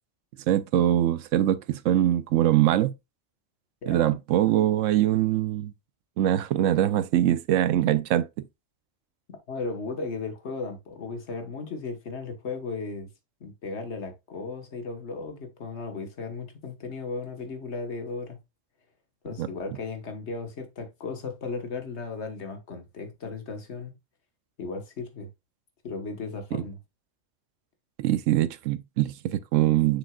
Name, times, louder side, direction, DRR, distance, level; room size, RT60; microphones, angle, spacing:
voice 1, 0.5-2.9 3.9-5.7 6.2-8.3 19.4-19.5 28.0-30.0, right 12 dB, 85° right, 1.0 m, -23 dB
voice 2, 3.8-4.2 9.5-13.1 13.4-18.4 19.2-23.9 24.6-25.3 25.8-26.8, left 4 dB, 65° left, 1.5 m, -35 dB
6.8 x 6.2 x 2.3 m
omnidirectional pair, 1.3 m